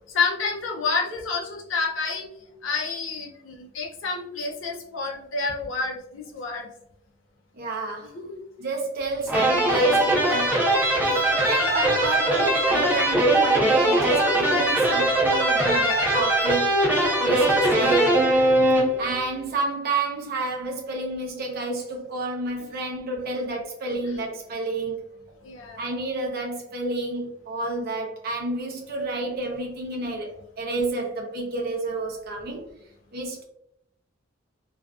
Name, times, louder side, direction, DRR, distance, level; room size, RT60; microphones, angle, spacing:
voice 1, 0.1-2.3 2.6-6.7 8.1-8.3 17.1-17.4 24.0-24.1 25.4-25.9, left 4 dB, 70° left, -1 dB, 0.5 m, -29 dB
voice 2, 7.5-8.1 8.6-10.7 11.0-16.7 17.2-18.3 19.0-25.0 25.8-32.6 33.1-33.4, right 2 dB, 50° right, 0 dB, 0.5 m, -30 dB
sound 1, 9.3-19.2, right 1 dB, 10° right, 0.7 m, -21 dB
2.4 x 2.4 x 2.3 m, 0.78 s
head